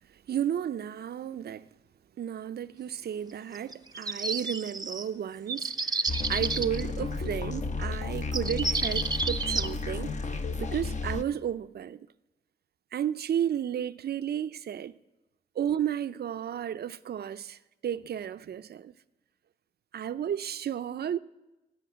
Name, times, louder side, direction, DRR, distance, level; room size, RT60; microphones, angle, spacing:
voice 1, 0.1-1.7 2.2-10.1 10.6-12.1 12.9-14.9 15.5-18.9 19.9-21.2, right 9 dB, 60° right, 0.5 m, -33 dB
sound 1, 3.5-5.1 5.5-6.8 8.0-8.1 8.3-9.7, right 3 dB, 20° right, 0.7 m, -31 dB
sound 2, 6.1-11.2, left 3 dB, 40° left, 0.9 m, -33 dB
14.5 x 5.8 x 9.2 m
cardioid pair, 65°, 19 cm